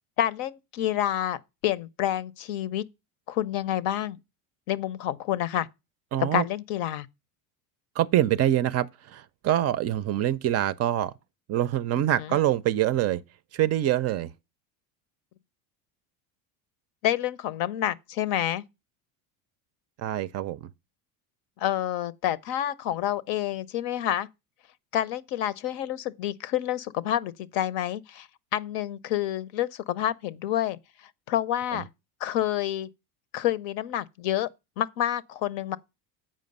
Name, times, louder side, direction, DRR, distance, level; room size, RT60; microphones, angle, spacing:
voice 1, 0.2-2.8 3.3-4.2 4.7-5.7 6.2-7.1 12.2-12.4 17.0-18.6 21.6-24.3 24.9-28.3 28.5-30.8 31.3-31.9 32.2-32.9 33.3-34.5 34.8-35.8, left 12 dB, 70° left, 0.7 m, -28 dB
voice 2, 6.1-6.4 8.0-8.9 9.1-11.1 11.5-13.2 13.5-14.3 20.0-20.7, right 12 dB, 35° right, 0.4 m, -25 dB
7.5 x 5.1 x 5.3 m
supercardioid pair, 120°, 43 cm